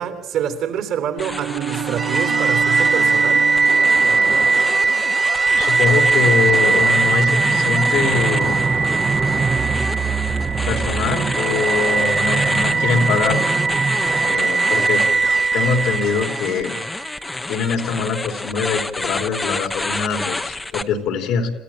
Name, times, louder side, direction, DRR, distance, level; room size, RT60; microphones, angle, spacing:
voice 1, 0.0-3.5, right 8 dB, 60° right, 3.1 m, -26 dB
Bowed string instrument, 1.1-4.2, right 11 dB, 80° right, 2.0 m, -29 dB
sound 1, 1.2-20.8, left 2 dB, 10° left, 0.8 m, -30 dB
sound 2, 2.0-17.1, right 4 dB, 25° right, 0.8 m, -19 dB
voice 2, 5.5-8.9 10.7-13.4 14.2-15.1 15.5-16.8 17.5-21.5, left 5 dB, 70° left, 3.2 m, -23 dB
27.5 x 15.0 x 8.8 m
cardioid pair, 135°, 0 cm